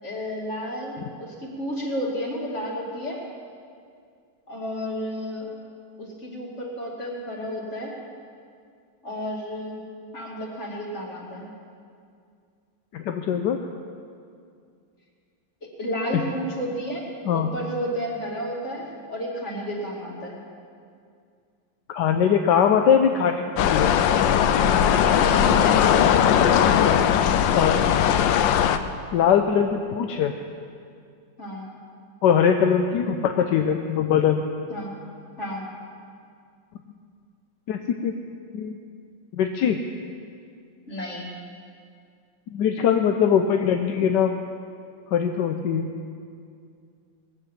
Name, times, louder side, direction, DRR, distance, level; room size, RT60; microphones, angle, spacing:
voice 1, 0.0-3.2 4.5-5.5 6.0-7.9 9.0-9.8 10.1-11.5 15.6-20.4 24.9-25.9 31.4-31.7 34.7-35.0 35.4-35.6 40.9-41.3, equal, 40° left, -2 dB, 2.7 m, -32 dB
voice 2, 12.9-13.6 16.1-16.2 17.3-17.5 22.0-23.9 26.8-27.0 27.5-27.8 29.1-30.3 32.2-34.5 37.7-38.1 38.5-38.8 39.3-39.8 42.5-44.3 45.1-45.9, left 8 dB, 70° left, 5 dB, 1.3 m, -21 dB
sound 1, 23.6-28.8, left 9 dB, 85° left, 1.4 m, -19 dB
19.5 x 8.2 x 7.3 m, 2.3 s
omnidirectional pair, 2.0 m